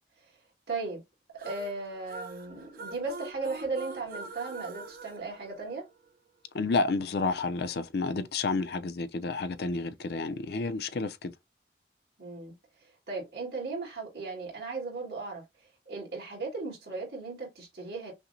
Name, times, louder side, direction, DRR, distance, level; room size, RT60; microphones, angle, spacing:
voice 1, 0.7-1.0 1.4-5.9 12.2-12.5 12.8-18.1, right 3 dB, 70° right, 2.0 m, -36 dB
sound 1, 1.4-6.1, right 3 dB, 50° right, 0.6 m, -44 dB
voice 2, 6.5-11.3, left 3 dB, 65° left, 0.5 m, -30 dB
5.7 x 2.1 x 2.6 m
head